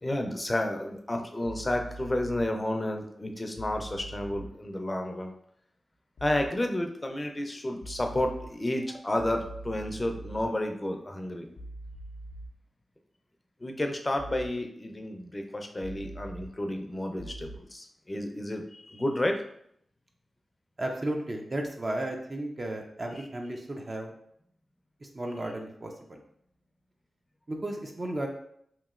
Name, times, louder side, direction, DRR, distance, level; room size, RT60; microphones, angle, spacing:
voice 1, 0.0-5.3 6.2-11.5 13.6-19.4, left 1 dB, 25° left, 4 dB, 0.4 m, -31 dB
sound 1, 1.4-2.5 3.6-4.5 6.2-6.5 7.8-8.5 9.2-10.5 11.6-12.5 14.2-14.5 15.8-16.5 17.2-17.6, right 1 dB, 85° left, 0.4 m, -42 dB
voice 2, 20.8-24.1 25.0-26.2 27.5-28.3, right 1 dB, 40° right, 2 dB, 0.4 m, -34 dB
2.9 x 2.5 x 2.4 m, 0.70 s
cardioid pair, 60°, 0 cm